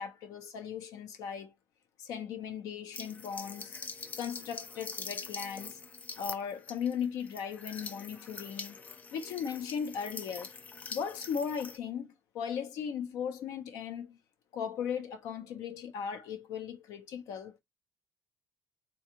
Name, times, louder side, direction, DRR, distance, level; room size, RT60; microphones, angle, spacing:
voice 1, 0.0-1.5 2.0-3.8 4.2-5.8 6.2-8.8 9.1-10.5 10.9-14.2 14.5-17.5, left 7 dB, 90° left, 0.9 m, -37 dB
sound 1, 2.9-11.8, left 5 dB, 25° left, 0.4 m, -44 dB
3.9 x 2.4 x 2.9 m
cardioid pair, 170°, 6 cm